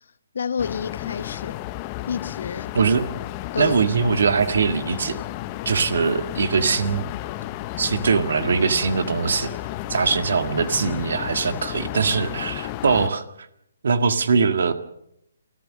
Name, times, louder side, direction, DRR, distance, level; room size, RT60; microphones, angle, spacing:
voice 1, 0.3-1.6 2.1-2.8 3.5-3.8, left 6 dB, 60° left, 1.0 m, -29 dB
sound 1, 0.6-13.1, left 16 dB, 30° left, 0.9 m, -33 dB
voice 2, 2.7-3.1 3.6-5.2 5.7-7.1 7.8-9.5 9.9-13.2 13.8-14.7, right 5 dB, 60° right, 1.8 m, -21 dB
28.5 x 14.5 x 6.5 m
figure-of-eight pair, 140°, 0 cm